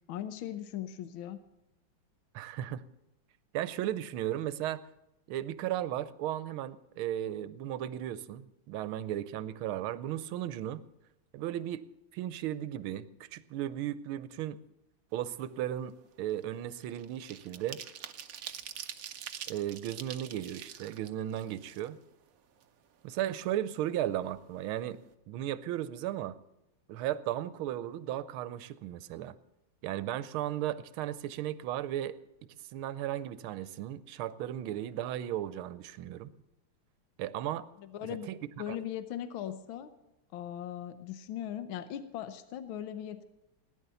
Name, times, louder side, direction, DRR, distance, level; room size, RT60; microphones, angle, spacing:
voice 1, 0.1-1.4 37.8-38.3 38.6-39.9 40.3-43.2, left 10 dB, 75° left, 11 dB, 1.6 m, -39 dB
voice 2, 2.3-2.8 3.5-4.8 5.3-10.8 11.3-11.9 12.1-14.6 15.1-17.8 19.5-22.0 23.0-25.0 25.3-26.4 26.9-29.3 29.8-32.2 32.7-36.3 37.2-37.7 38.3-38.4 38.7-38.8, right 12 dB, 80° right, 15 dB, 1.5 m, -35 dB
sound 1, 15.2-15.5 15.8-22.2 22.6-22.7 23.0-24.0 24.3-24.4 24.7-25.0, right 9 dB, 60° right, 0.9 m, -45 dB
17.5 x 10.5 x 6.9 m, 0.91 s
omnidirectional pair, 2.3 m